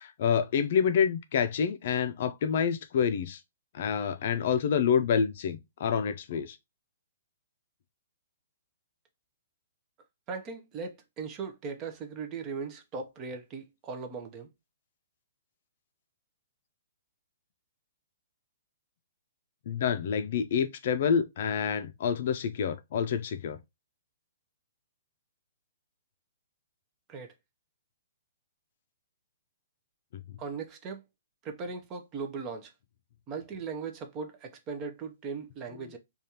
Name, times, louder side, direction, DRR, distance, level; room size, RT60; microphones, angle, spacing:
voice 1, 0.0-3.4 3.7-6.6 19.7-23.6, left 7 dB, 50° left, 0.4 m, -27 dB
voice 2, 10.3-14.5 27.1-27.3 30.4-31.0 31.4-32.7 33.3-36.0, right 5 dB, 25° right, 0.5 m, -38 dB
5.0 x 2.3 x 2.8 m
hypercardioid pair, 155°, 0 cm